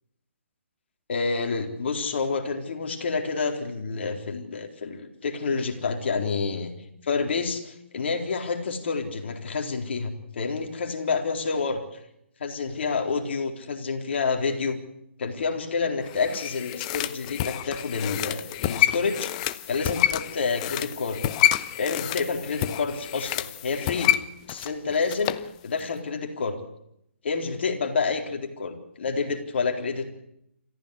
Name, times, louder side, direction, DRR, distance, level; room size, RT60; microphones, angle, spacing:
voice 1, 1.1-6.7 7.0-11.8 12.4-14.8 15.2-19.3 19.7-21.2 21.8-24.1 24.5-25.3 25.6-26.6 27.2-30.1, left 4 dB, 60° left, 4 dB, 4.0 m, -28 dB
sound 1, 16.1-25.5 25.8-25.9, left 13 dB, 35° left, 0.9 m, -28 dB
28.0 x 15.0 x 8.4 m, 0.80 s
figure-of-eight pair, 140°, 7 cm